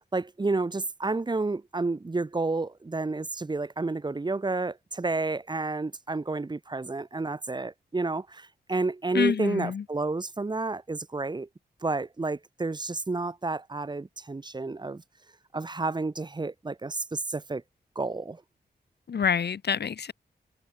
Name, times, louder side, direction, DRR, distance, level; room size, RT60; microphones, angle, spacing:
voice 1, 0.0-11.5 11.8-15.0 15.5-17.6 17.9-18.4, right 3 dB, 25° right, 4.6 m, -30 dB
voice 2, 9.1-9.8 19.1-20.1, left 7 dB, 75° left, 7.0 m, -27 dB
wide cardioid pair, 175°, 17 cm